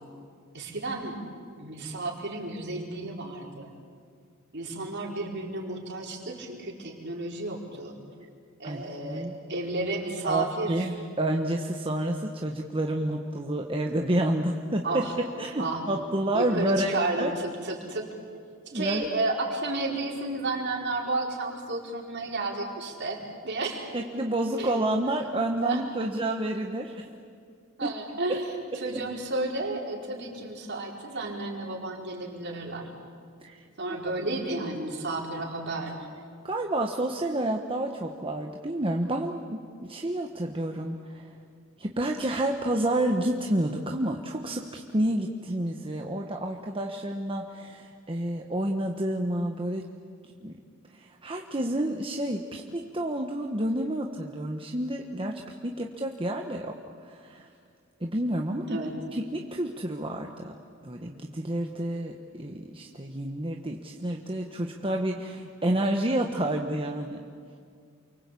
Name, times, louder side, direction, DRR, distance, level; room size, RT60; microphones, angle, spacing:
voice 1, 0.5-1.2 1.6-3.7 4.5-8.0 8.6-10.8 14.8-15.1 15.6-15.8 16.3-18.1 18.7-23.9 24.6-24.7 25.6-25.8 27.8-32.9 33.8-36.0 58.7-58.9, right 2 dB, 55° right, -1 dB, 4.8 m, -32 dB
voice 2, 8.6-9.3 10.2-15.1 15.4-17.3 18.7-19.0 23.9-27.1 27.8-27.9 28.9-29.0 33.4-33.6 36.4-41.3 41.8-49.9 50.4-50.6 50.9-56.8 57.0-57.5 58.0-58.8 59.1-60.5 60.8-67.2, right 1 dB, 25° right, 2 dB, 1.3 m, -29 dB
29.0 x 24.0 x 8.5 m, 2.2 s
head